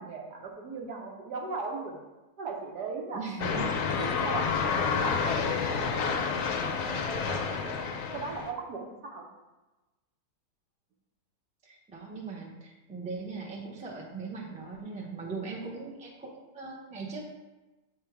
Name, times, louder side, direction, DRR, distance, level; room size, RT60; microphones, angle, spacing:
voice 1, 0.0-2.0 2.4-9.3, right 4 dB, 65° right, 1 dB, 1.5 m, -39 dB
voice 2, 3.1-3.7 11.6-17.2, right 4 dB, 5° right, -2 dB, 0.5 m, -39 dB
sound 1, 3.4-8.5, left 6 dB, 60° left, 0.9 m, -29 dB
8.4 x 3.6 x 4.6 m, 1.1 s
omnidirectional pair, 1.9 m